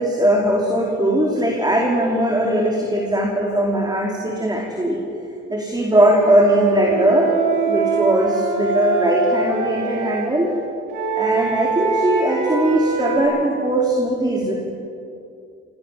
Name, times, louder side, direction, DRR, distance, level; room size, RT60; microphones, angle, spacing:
voice 1, 0.0-5.0 5.5-10.5 11.1-14.6, right 1 dB, 15° right, -1 dB, 4.7 m, -19 dB
Wind instrument woodwind instrument, 5.9-10.3 10.9-13.2, right 5 dB, 85° right, 5.3 m, -23 dB
28.0 x 24.0 x 7.6 m, 2.6 s
cardioid pair, 90°, 30 cm